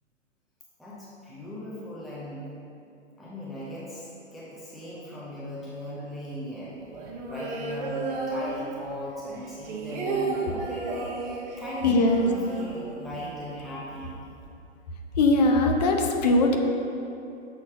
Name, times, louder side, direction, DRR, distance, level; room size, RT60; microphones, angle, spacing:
voice 1, 0.8-2.5 3.2-4.1 4.3-14.1, equal, ahead, -8 dB, 0.5 m, -38 dB
sound 1, 6.9-9.1 9.4-13.3 13.6-13.7 14.0-14.5, right 3 dB, 40° right, 1.1 m, -33 dB
voice 2, 11.8-12.3 15.1-16.6, left 2 dB, 35° left, 3 dB, 0.7 m, -20 dB
6.6 x 4.0 x 6.4 m, 2.8 s
figure-of-eight pair, 115°, 36 cm